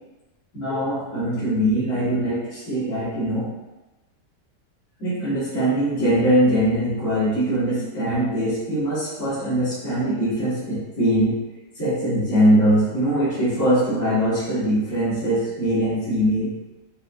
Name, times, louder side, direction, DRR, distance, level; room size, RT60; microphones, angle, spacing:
voice 1, 0.5-3.5 5.0-11.3 11.8-16.5, right 1 dB, 45° left, -14 dB, 1.9 m, -22 dB
5.0 x 2.4 x 2.5 m, 1.1 s
omnidirectional pair, 1.8 m